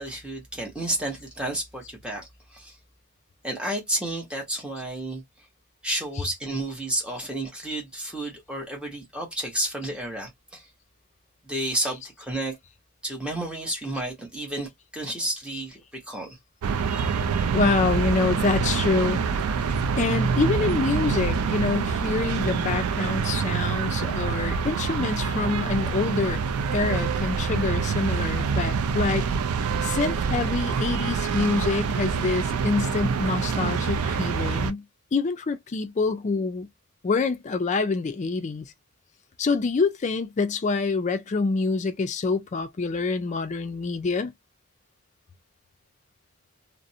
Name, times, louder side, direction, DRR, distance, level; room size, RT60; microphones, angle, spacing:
voice 1, 0.0-2.8 3.4-5.2 5.8-10.7 11.4-12.6 13.0-16.4, right 1 dB, 5° right, 0.9 m, -31 dB
sound 1, 16.6-34.7, right 5 dB, 85° right, 0.4 m, -26 dB
voice 2, 17.5-19.2 20.0-26.4 26.7-29.3 29.8-34.9 35.1-36.7 37.0-38.7 39.4-44.3, left 4 dB, 35° left, 0.3 m, -26 dB
2.5 x 2.0 x 2.6 m
head